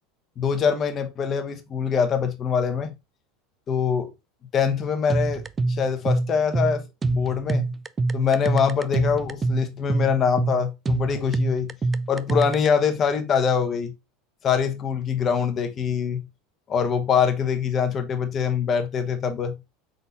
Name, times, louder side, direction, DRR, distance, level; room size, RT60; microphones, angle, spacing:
voice 1, 0.4-2.9 3.7-4.1 4.5-7.7 8.1-11.7 12.1-13.9 14.4-16.2 16.7-19.5, left 7 dB, 40° left, 1.0 m, -24 dB
sound 1, 5.1-12.7, right 3 dB, 25° right, 0.3 m, -25 dB
3.9 x 3.9 x 2.7 m
hypercardioid pair, 85°, 0 cm